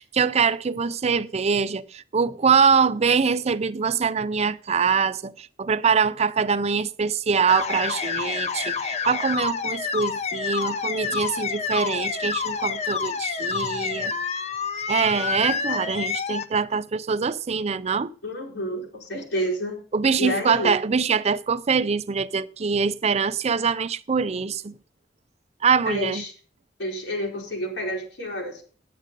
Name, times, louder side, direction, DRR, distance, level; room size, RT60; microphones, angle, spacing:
voice 1, 0.0-14.1 14.9-18.1 19.9-24.7 25.6-26.2, right 5 dB, 35° right, 0.5 m, -23 dB
sound 1, 7.5-16.5, left 5 dB, 40° left, 0.6 m, -28 dB
voice 2, 18.2-19.8 20.2-20.8 25.8-26.3 26.8-28.6, equal, 90° left, 3.4 m, -29 dB
9.4 x 9.0 x 5.2 m
head